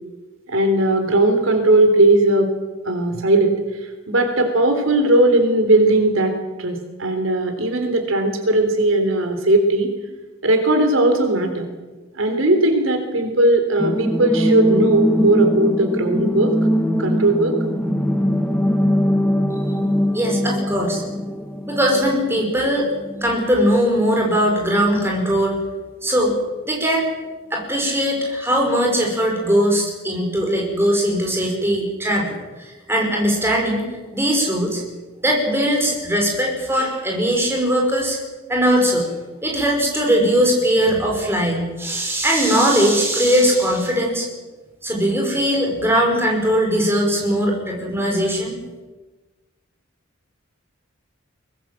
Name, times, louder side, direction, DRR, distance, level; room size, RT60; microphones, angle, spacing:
voice 1, 0.5-2.5 2.9-3.6 3.8-6.3 6.6-10.0 10.4-11.7 12.2-16.5 17.0-17.6, right 2 dB, 80° right, 6 dB, 3.5 m, -18 dB
sound 1, 13.8-23.4 23.7-23.8, equal, 5° left, 1.8 m, -21 dB
voice 2, 20.1-21.0 21.7-25.6 26.0-26.4 26.7-27.1 27.5-33.8 34.1-34.8 35.2-38.2 38.5-39.1 39.4-44.3 44.8-48.6, equal, 10° right, 0 dB, 5.5 m, -20 dB
23.0 x 20.0 x 7.6 m, 1.2 s
head